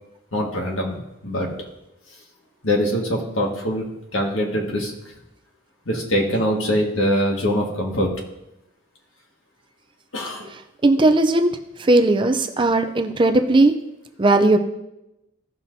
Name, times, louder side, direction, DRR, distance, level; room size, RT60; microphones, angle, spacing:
voice 1, 0.3-1.5 2.6-4.9 5.9-8.1 10.1-10.5 12.6-12.7, equal, 70° left, 0 dB, 1.7 m, -23 dB
voice 2, 10.8-11.5 11.9-13.7 14.2-14.6, right 2 dB, 25° right, 5 dB, 0.4 m, -17 dB
16.0 x 5.8 x 2.7 m, 0.91 s
head